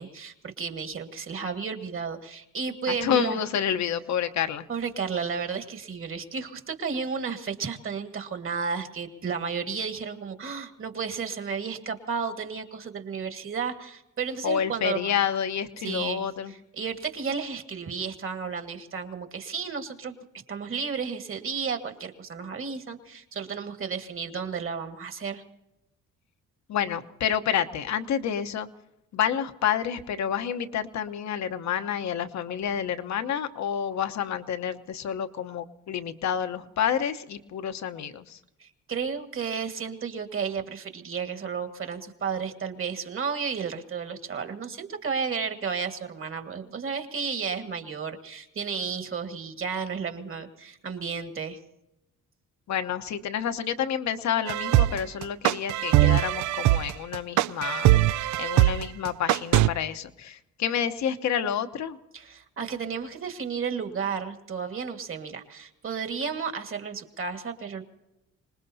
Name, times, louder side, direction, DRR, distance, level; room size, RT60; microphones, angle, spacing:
voice 1, 0.0-3.4 4.7-15.1 15.8-20.2 20.5-25.4 38.6-51.6 62.1-67.8, right 6 dB, 45° right, 6 dB, 1.8 m, -33 dB
voice 2, 2.9-4.6 14.4-16.5 26.7-28.7 29.1-38.4 52.7-57.9 58.4-62.0, left 8 dB, 65° left, 9 dB, 1.1 m, -29 dB
sound 1, 54.5-59.7, right 15 dB, 70° right, 0.5 m, -21 dB
26.0 x 19.5 x 2.8 m, 0.91 s
cardioid pair, 90°, 30 cm